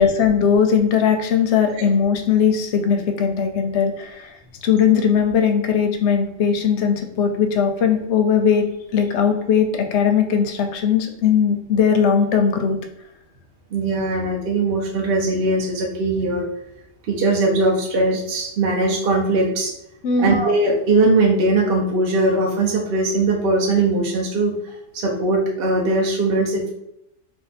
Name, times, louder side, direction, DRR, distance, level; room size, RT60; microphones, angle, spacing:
voice 1, 0.0-4.3 4.6-12.8 20.0-20.4, left 7 dB, 65° left, 5 dB, 0.8 m, -19 dB
voice 2, 13.7-16.4 17.1-19.7 20.2-26.7, right 2 dB, 60° right, -1 dB, 0.7 m, -20 dB
2.6 x 2.3 x 4.0 m, 0.79 s
omnidirectional pair, 1.3 m